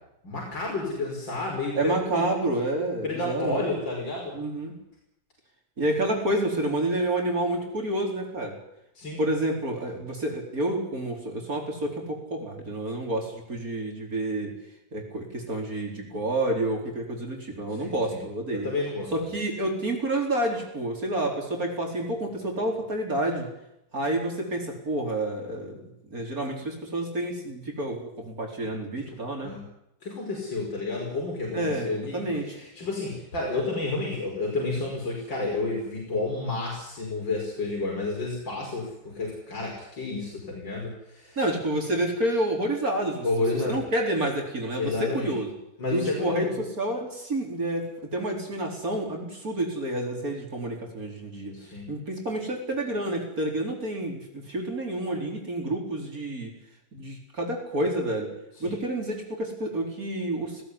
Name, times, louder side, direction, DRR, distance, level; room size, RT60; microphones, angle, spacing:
voice 1, 0.2-2.3 3.0-4.4 9.0-9.2 17.7-18.2 18.5-19.1 28.6-28.7 29.4-29.6 30.0-32.2 32.5-41.4 43.2-43.8 44.8-45.3 45.8-46.5 51.5-51.9 58.6-58.8, left 3 dB, 75° left, -2 dB, 6.0 m, -30 dB
voice 2, 1.7-3.7 4.3-4.8 5.8-8.6 9.2-14.6 14.9-18.7 19.1-23.5 23.9-25.8 26.1-29.5 31.5-32.6 41.4-43.3 43.5-45.5 45.9-51.6 51.9-56.5 56.9-58.3 58.6-60.6, right 1 dB, 45° right, 1 dB, 4.8 m, -29 dB
18.0 x 18.0 x 9.8 m, 0.82 s
omnidirectional pair, 2.0 m